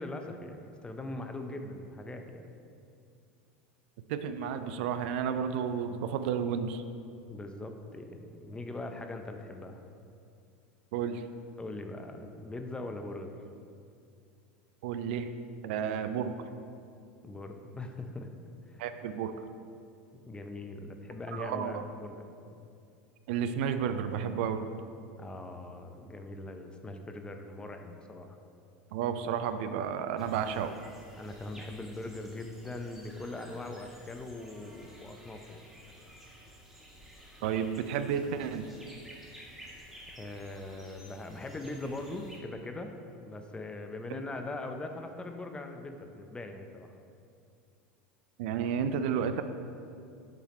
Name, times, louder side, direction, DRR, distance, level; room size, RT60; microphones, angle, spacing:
voice 1, 0.0-2.5 7.3-9.8 11.6-13.3 17.2-18.3 18.7-18.8 20.3-22.3 25.2-28.4 31.2-35.6 40.2-46.9, left 2 dB, 15° left, 6 dB, 0.6 m, -41 dB
voice 2, 4.1-6.8 10.9-11.2 14.8-15.3 15.6-16.3 18.8-19.3 21.3-21.8 23.3-24.7 28.9-30.8 37.4-38.7 44.1-44.2 48.4-49.4, right 7 dB, 70° right, 9 dB, 0.4 m, -32 dB
sound 1, 30.2-42.4, equal, 5° right, 1.5 m, -53 dB
7.2 x 3.9 x 4.2 m, 2.5 s
hypercardioid pair, 100°, 6 cm